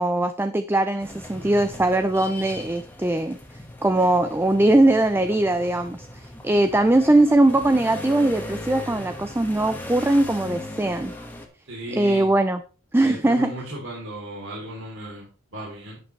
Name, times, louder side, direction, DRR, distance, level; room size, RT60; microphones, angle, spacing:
voice 1, 0.0-3.4 3.8-11.1 11.9-12.6 12.9-13.5, right 1 dB, 10° right, 10 dB, 0.4 m, -20 dB
sound 1, 1.0-11.5, left 1 dB, 10° left, 1.5 m, -38 dB
voice 2, 11.7-12.3 13.0-16.0, right 1 dB, 70° right, -3 dB, 3.2 m, -36 dB
11.5 x 8.6 x 3.2 m, 0.37 s
head